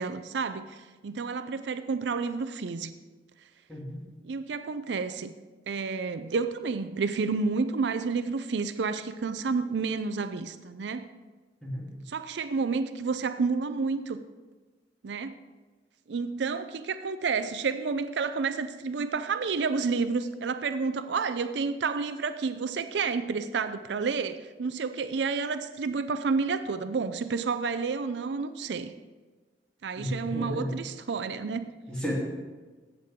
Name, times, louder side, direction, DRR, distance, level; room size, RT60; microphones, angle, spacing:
voice 1, 0.0-2.9 4.2-5.3 5.7-11.1 12.1-14.2 15.0-15.4 16.1-28.9 29.8-31.7, right 4 dB, 75° right, 10 dB, 0.5 m, -30 dB
voice 2, 3.7-4.0 11.6-11.9 30.0-30.7 31.9-32.1, equal, 5° left, -6 dB, 3.1 m, -33 dB
15.0 x 8.2 x 3.7 m, 1.3 s
head